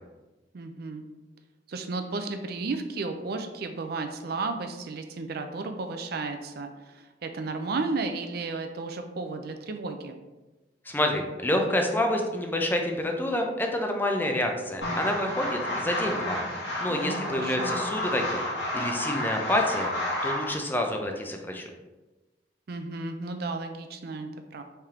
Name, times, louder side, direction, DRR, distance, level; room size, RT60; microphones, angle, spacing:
voice 1, 0.5-1.0 1.7-10.2 16.9-17.8 22.7-24.6, right 3 dB, 60° right, 6 dB, 0.4 m, -33 dB
voice 2, 10.9-16.4 16.8-18.4 18.7-19.9 20.2-21.7, left 1 dB, 10° left, 3 dB, 0.5 m, -28 dB
sound 1, 14.8-20.6, left 1 dB, 75° left, 1.3 m, -31 dB
4.3 x 3.4 x 3.6 m, 1.1 s
head